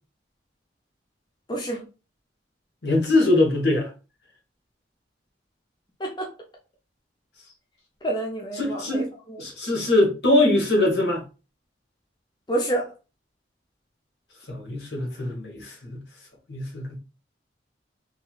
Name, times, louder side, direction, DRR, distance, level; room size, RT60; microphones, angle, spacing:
voice 1, 1.5-1.8 6.0-6.3 8.0-9.0 9.3-9.4 12.5-12.8, right 1 dB, 25° left, 0.5 m, -28 dB
voice 2, 2.8-3.9 8.6-9.1 9.4-11.2 14.5-16.0 16.5-17.0, left 2 dB, 65° left, 1.0 m, -22 dB
3.0 x 2.6 x 2.3 m
head